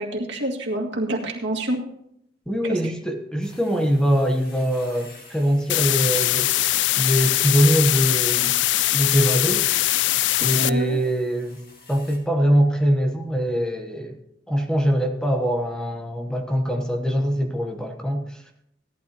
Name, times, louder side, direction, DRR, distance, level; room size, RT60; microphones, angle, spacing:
voice 1, 0.0-1.8 2.7-2.8 10.6-11.0, right 1 dB, 75° right, 0 dB, 2.1 m, -27 dB
voice 2, 2.5-6.5 7.0-8.6 8.9-9.9 10.4-11.6 11.9-14.2 14.5-18.4, equal, 5° left, 3 dB, 0.9 m, -23 dB
sound 1, 3.4-12.2, left 3 dB, 55° left, 2.5 m, -48 dB
sound 2, 5.7-10.7, left 16 dB, 85° left, 0.3 m, -21 dB
17.0 x 11.5 x 2.9 m, 0.75 s
head